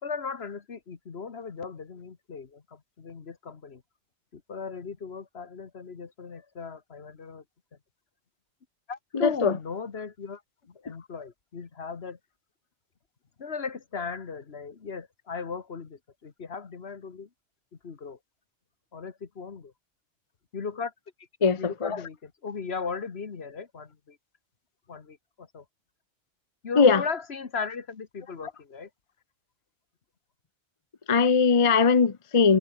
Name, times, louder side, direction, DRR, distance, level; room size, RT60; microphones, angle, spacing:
voice 1, 0.0-3.8 4.3-7.4 8.9-10.4 10.7-12.2 13.4-17.3 17.8-18.2 18.9-19.7 20.5-20.9 21.6-24.2 24.9-25.6 26.6-28.9, left 5 dB, 60° left, 1.7 m, -37 dB
voice 2, 9.1-9.6 21.4-22.0 26.8-27.0 31.1-32.6, left 5 dB, 30° left, 0.7 m, -20 dB
omnidirectional pair, 1.2 m